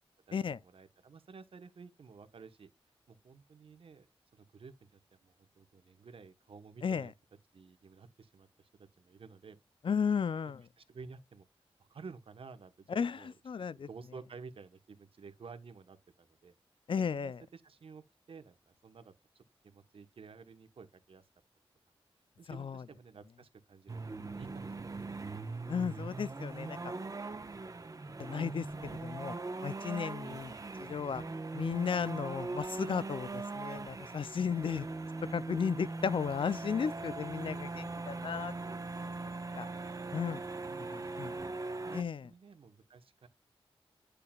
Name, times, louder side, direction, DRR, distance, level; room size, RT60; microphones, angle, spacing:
voice 1, 0.6-2.7 3.1-4.1 4.3-7.1 7.5-8.7 9.0-9.6 10.3-10.4 10.8-11.4 11.8-13.4 13.7-16.5 17.0-21.3 22.4-25.2 30.2-30.4 40.7-41.5 41.8-43.3, right 5 dB, 70° right, 1.2 m, -53 dB
voice 2, 9.8-10.7 12.9-13.9 16.9-17.4 22.5-22.8 25.7-26.9 28.2-29.4 29.6-30.5 30.8-31.2 31.5-34.9 35.3-38.8 39.1-39.2 39.6-39.7 40.1-40.4 40.9-41.4 41.9-42.3, left 6 dB, 60° left, 0.5 m, -34 dB
sound 1, 23.9-42.0, right 3 dB, 35° right, 1.2 m, -41 dB
10.5 x 6.7 x 2.4 m
wide cardioid pair, 85°, 10 cm